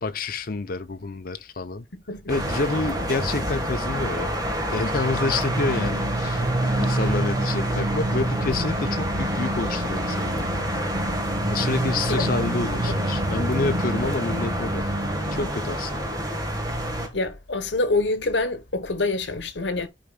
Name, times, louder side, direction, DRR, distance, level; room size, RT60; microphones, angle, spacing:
voice 1, 0.0-1.9 2.3-10.5 11.5-14.9 15.3-16.1, left 3 dB, 50° left, 0.6 m, -28 dB
voice 2, 1.9-2.2 12.1-12.4 17.1-19.9, left 2 dB, 70° left, 1.2 m, -26 dB
sound 1, 2.3-17.1, right 1 dB, 20° right, 1.5 m, -27 dB
sound 2, 5.7-15.5, equal, 45° right, 1.7 m, -32 dB
13.5 x 4.8 x 2.3 m
head